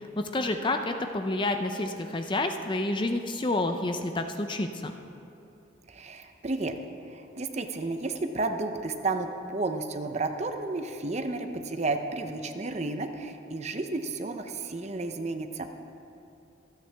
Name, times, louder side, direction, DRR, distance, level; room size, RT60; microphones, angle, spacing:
voice 1, 0.2-4.9, left 2 dB, 25° left, 6 dB, 0.5 m, -29 dB
voice 2, 5.9-6.8 7.0-15.7, right 3 dB, 35° right, 7 dB, 0.7 m, -32 dB
25.5 x 9.2 x 3.4 m, 2.7 s
head